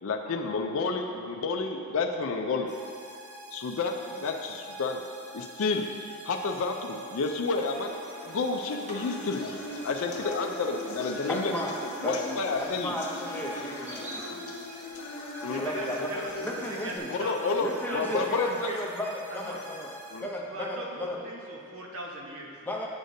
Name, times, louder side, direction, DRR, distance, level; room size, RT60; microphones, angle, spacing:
voice 1, 0.0-2.7 3.5-5.0 5.3-5.9 6.2-8.0 8.3-9.4 9.8-11.5 12.0-13.0 15.4-15.6 17.1-18.7 20.1-20.3, left 4 dB, 65° left, 3 dB, 0.4 m, -30 dB
sound 1, 2.7-20.2, equal, 90° right, 0.9 m, -46 dB
sound 2, 7.5-14.3, equal, 30° right, 1.2 m, -46 dB
sound 3, 9.0-17.0, left 2 dB, 85° left, 0.8 m, -40 dB
voice 2, 11.3-11.7 12.0-14.5 15.6-17.1 17.6-19.9 20.2-21.2 22.6-22.9, left 1 dB, 10° left, -2 dB, 0.6 m, -34 dB
voice 3, 15.5-18.8 19.3-19.6 20.5-22.5, right 1 dB, 65° right, -2 dB, 1.0 m, -40 dB
8.8 x 6.4 x 2.7 m, 2.4 s
head